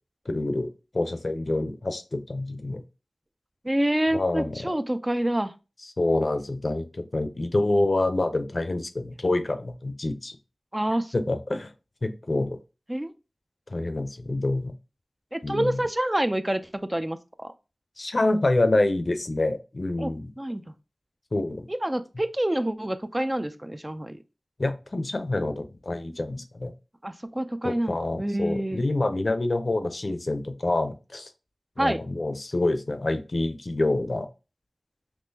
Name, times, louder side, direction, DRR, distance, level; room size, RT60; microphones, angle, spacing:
voice 1, 0.3-0.7 0.9-2.8 4.1-4.6 6.0-10.3 11.1-11.7 12.0-12.6 13.7-14.7 15.4-15.8 18.0-20.3 21.3-21.7 24.6-26.7 27.6-31.3 31.8-34.3, left 2 dB, 50° left, 9 dB, 0.5 m, -27 dB
voice 2, 3.6-5.5 10.7-11.1 12.9-13.1 15.3-16.6 16.9-17.5 20.0-20.7 21.7-24.2 27.0-28.8 31.8-32.0, right 1 dB, 20° right, 10 dB, 0.3 m, -27 dB
3.6 x 2.8 x 2.7 m, 0.29 s
wide cardioid pair, 70°, 0 cm